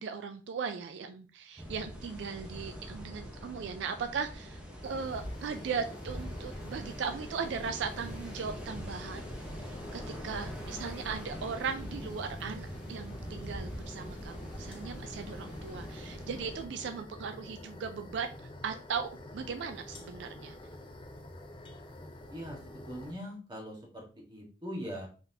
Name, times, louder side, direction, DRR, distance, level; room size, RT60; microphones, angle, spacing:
voice 1, 0.0-9.2 9.6-20.6, right 6 dB, 75° right, 7 dB, 0.3 m, -38 dB
sound 1, 1.6-16.6, equal, 5° right, 0.9 m, -43 dB
sound 2, 4.8-23.1, left 1 dB, 30° left, 0.5 m, -47 dB
voice 2, 22.3-25.1, equal, 25° right, -2 dB, 1.4 m, -41 dB
3.9 x 3.5 x 2.7 m, 0.37 s
head